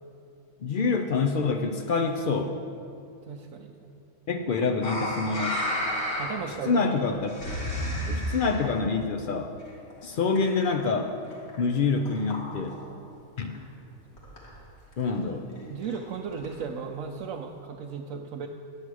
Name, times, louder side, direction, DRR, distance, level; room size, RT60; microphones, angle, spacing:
voice 1, 0.6-2.5 4.3-5.6 6.7-7.3 8.1-9.5 10.0-11.1 11.6-12.8 13.4-13.7 15.0-15.5, left 4 dB, 75° left, 5 dB, 0.4 m, -26 dB
voice 2, 3.3-3.9 6.2-6.8 15.7-18.5, right 6 dB, 70° right, 1 dB, 1.0 m, -35 dB
sound 1, 4.8-6.6 6.9-8.7 9.6-10.9 11.1-11.7 12.1-12.9 13.2-13.3 13.5-13.6 13.8-13.9 14.1-14.6 14.9-15.0 15.5-16.8 17.4-17.5, left 1 dB, 45° left, 2.2 m, -33 dB
10.5 x 8.1 x 6.2 m, 2.6 s
omnidirectional pair, 1.5 m